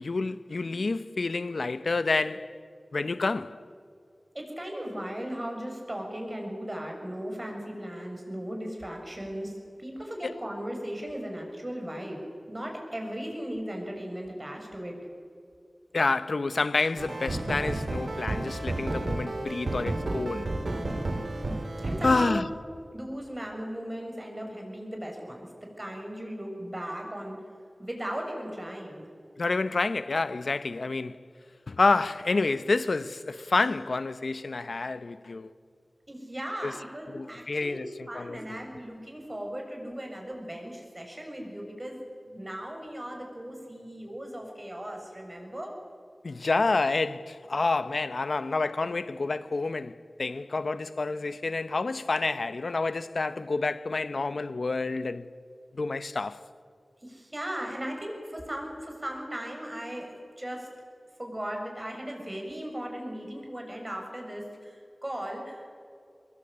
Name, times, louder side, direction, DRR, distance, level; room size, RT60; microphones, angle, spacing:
voice 1, 0.0-2.6 2.9-3.6 10.2-10.3 15.9-20.5 22.0-22.5 29.4-31.2 31.7-35.5 36.6-36.7 37.1-38.4 46.2-55.3 55.7-56.4, left 3 dB, 85° left, 0.8 m, -28 dB
voice 2, 4.3-15.0 21.8-22.4 22.9-27.4 27.8-29.0 36.1-45.7 57.0-60.7 61.2-65.8, equal, 30° right, 6.9 m, -37 dB
sound 1, 17.0-22.2, right 2 dB, 80° right, 2.7 m, -31 dB
24.0 x 21.0 x 8.7 m
wide cardioid pair, 45°, 0 cm